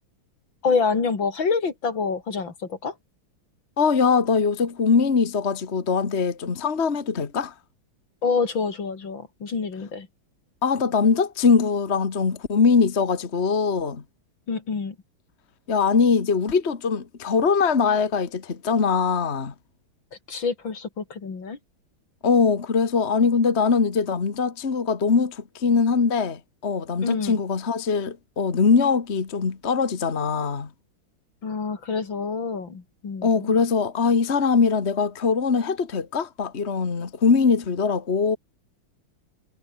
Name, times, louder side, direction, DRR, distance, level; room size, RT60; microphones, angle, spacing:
voice 1, 0.6-2.9 8.2-10.1 14.5-15.0 20.3-21.6 27.0-27.4 31.4-33.6, left 5 dB, 70° left, 3.7 m, -27 dB
voice 2, 3.8-7.5 10.6-14.0 15.7-19.5 22.2-30.7 33.2-38.4, left 5 dB, 35° left, 1.8 m, -22 dB
omnidirectional pair, 2.2 m